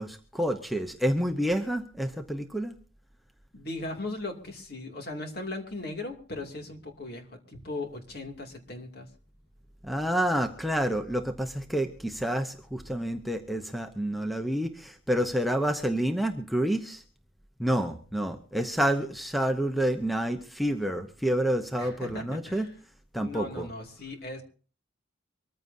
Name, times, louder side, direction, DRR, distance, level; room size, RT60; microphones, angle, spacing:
voice 1, 0.0-2.7 9.8-17.0 17.6-22.7 23.1-23.7, right 1 dB, ahead, 4 dB, 0.8 m, -28 dB
voice 2, 3.5-9.1 21.8-22.8 23.2-24.4, left 2 dB, 50° left, 3 dB, 2.6 m, -38 dB
24.0 x 14.5 x 2.7 m, 0.40 s
head